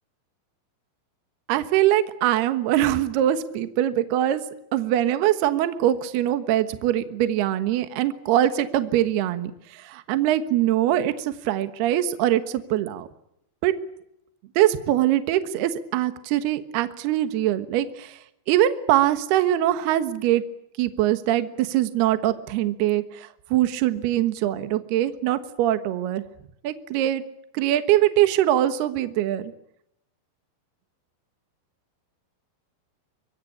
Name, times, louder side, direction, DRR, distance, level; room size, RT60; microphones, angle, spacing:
voice 1, 1.5-4.4 4.7-9.5 9.8-13.1 13.6-13.7 14.6-18.2 18.5-20.4 20.8-26.2 26.6-27.2 27.5-29.5, right 12 dB, 70° right, 10 dB, 3.1 m, -22 dB
25.0 x 24.5 x 8.5 m, 0.78 s
omnidirectional pair, 5.3 m